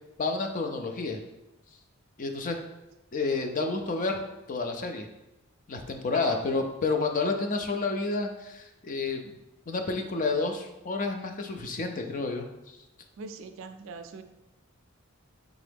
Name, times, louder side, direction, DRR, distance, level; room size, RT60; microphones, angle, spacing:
voice 1, 0.2-1.2 2.2-2.6 3.1-4.2 4.5-5.1 5.7-9.3 9.7-12.5, left 3 dB, 40° left, 5 dB, 0.4 m, -30 dB
voice 2, 6.1-6.4 13.2-14.2, right 4 dB, 65° right, 9 dB, 0.3 m, -41 dB
3.8 x 3.5 x 3.5 m, 0.94 s
head